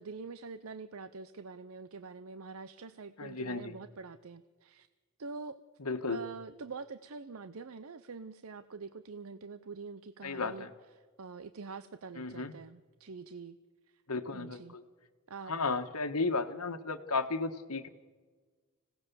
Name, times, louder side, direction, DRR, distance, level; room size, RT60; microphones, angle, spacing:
voice 1, 0.0-4.9 5.2-5.6 6.0-10.7 10.9-13.6 13.9-14.0 14.3-14.8 15.3-15.5, right 4 dB, 70° right, 13 dB, 0.7 m, -45 dB
voice 2, 3.2-3.7 5.8-6.2 10.2-10.7 12.2-12.5 14.1-14.8 15.5-17.9, left 3 dB, 85° left, 8 dB, 1.5 m, -34 dB
26.0 x 17.5 x 7.0 m, 1.4 s
head